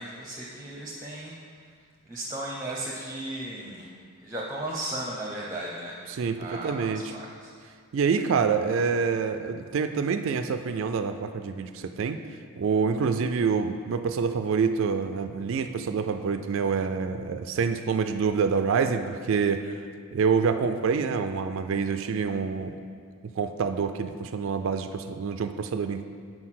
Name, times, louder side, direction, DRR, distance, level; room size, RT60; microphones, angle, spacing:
voice 1, 0.0-1.3 2.1-3.9 4.2-6.0 6.4-7.5, right 1 dB, 15° right, -3 dB, 0.6 m, -35 dB
voice 2, 6.1-7.2 7.9-12.2 12.6-19.8 20.1-22.8 23.4-26.0, right 5 dB, 60° right, 8 dB, 0.3 m, -27 dB
6.3 x 4.5 x 5.8 m, 2.1 s
head